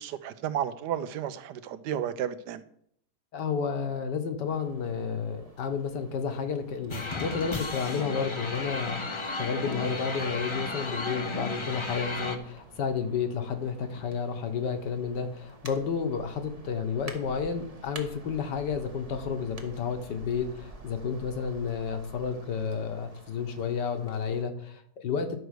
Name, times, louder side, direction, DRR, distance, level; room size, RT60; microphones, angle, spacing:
voice 1, 0.0-2.6, right 10 dB, 75° right, 14 dB, 1.2 m, -32 dB
voice 2, 3.3-9.0 9.3-25.4, left 6 dB, 75° left, 6 dB, 1.7 m, -31 dB
sound 1, 4.5-24.4, right 3 dB, 25° right, 0.9 m, -50 dB
sound 2, 6.9-12.4, left 2 dB, 35° left, 0.4 m, -34 dB
11.5 x 4.6 x 6.5 m, 0.68 s
omnidirectional pair, 1.9 m